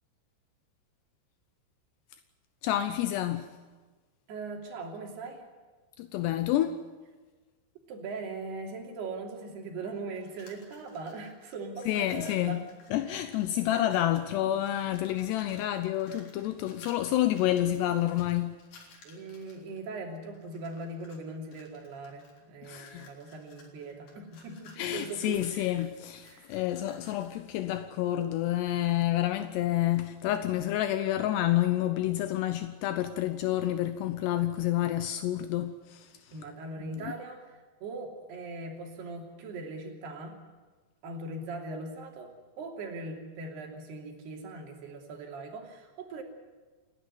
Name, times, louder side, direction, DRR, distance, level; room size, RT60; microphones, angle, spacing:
voice 1, 2.6-3.5 6.0-6.8 11.9-18.6 22.6-23.1 24.8-36.3 36.8-37.2, left 13 dB, 80° left, 2.9 m, -29 dB
voice 2, 4.3-5.4 7.9-12.6 13.1-13.3 13.7-14.2 19.0-25.8 26.2-26.6 36.3-40.4 41.0-46.2, right 3 dB, 70° right, 5.0 m, -40 dB
sound 1, 10.2-11.5 11.7-14.3 14.6-19.8 20.3-21.2 21.5-27.4, left 4 dB, 65° left, 5.6 m, -57 dB
29.0 x 12.5 x 9.7 m
omnidirectional pair, 4.9 m